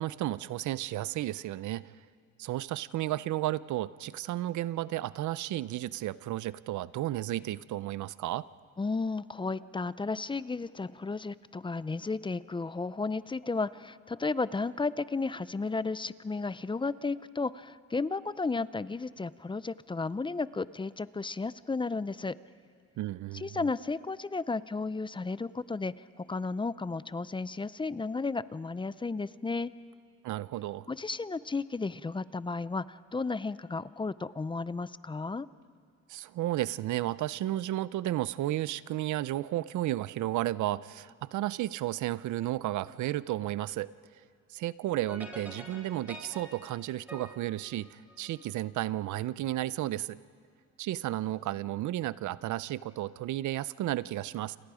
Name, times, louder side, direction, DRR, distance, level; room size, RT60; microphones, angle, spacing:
voice 1, 0.0-1.9 2.4-8.5 23.0-23.6 30.2-30.9 36.1-43.9 44.5-50.2 50.8-54.6, right 14 dB, 75° right, 18 dB, 0.6 m, -33 dB
voice 2, 8.8-22.4 23.3-29.7 30.9-35.5, left 3 dB, 15° left, 17 dB, 0.5 m, -33 dB
sound 1, 45.1-48.5, equal, 5° right, 7.0 m, -47 dB
29.0 x 27.5 x 5.0 m, 2.1 s
cardioid pair, 90°, 30 cm